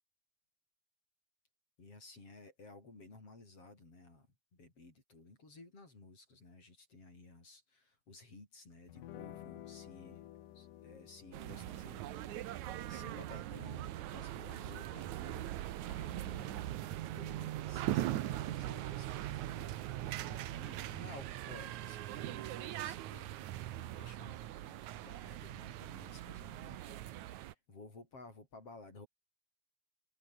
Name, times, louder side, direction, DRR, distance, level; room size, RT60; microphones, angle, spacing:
voice 1, 1.8-10.3 10.5-19.8 20.3-23.3 23.8-29.1, left 3 dB, 35° left, 8.2 m, -56 dB
sound 1, 8.9-16.6, left 13 dB, 65° left, 2.5 m, -55 dB
sound 2, 11.3-27.5, right 14 dB, 75° right, 1.7 m, -41 dB
omnidirectional pair, 4.8 m